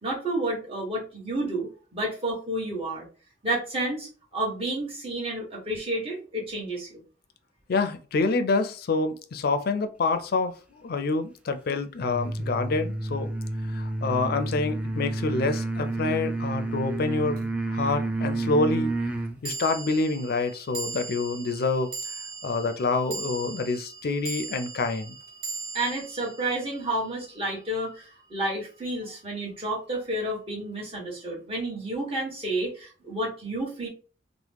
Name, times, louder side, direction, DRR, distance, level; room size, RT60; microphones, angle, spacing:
voice 1, 0.0-3.1 3.4-7.0 25.7-33.9, right 1 dB, 35° right, 1.3 m, -30 dB
voice 2, 7.7-10.5 10.8-13.3 13.7-18.9 19.4-21.9 22.4-25.2, left 3 dB, 60° left, 0.4 m, -27 dB
sound 1, 12.0-19.4, right 2 dB, 5° right, 0.3 m, -30 dB
sound 2, 17.4-17.5 19.4-27.9, right 4 dB, 55° right, 0.6 m, -39 dB
2.9 x 2.1 x 3.4 m
head